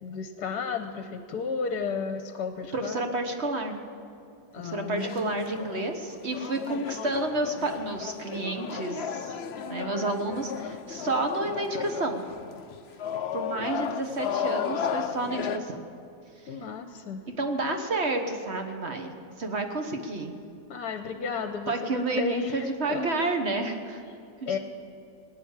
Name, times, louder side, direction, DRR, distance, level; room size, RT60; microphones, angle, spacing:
voice 1, 0.0-3.1 4.5-5.6 16.5-17.2 20.7-23.4 24.5-24.6, left 5 dB, 65° left, 7 dB, 1.3 m, -33 dB
voice 2, 2.7-3.9 4.6-9.4 9.7-12.2 13.3-15.9 17.3-19.1 19.4-20.4 21.7-24.0 24.4-24.6, right 2 dB, 40° right, 4 dB, 1.3 m, -30 dB
sound 1, 4.7-15.6, left 7 dB, 85° left, 0.5 m, -34 dB
19.0 x 9.7 x 7.3 m, 2.7 s
omnidirectional pair, 2.0 m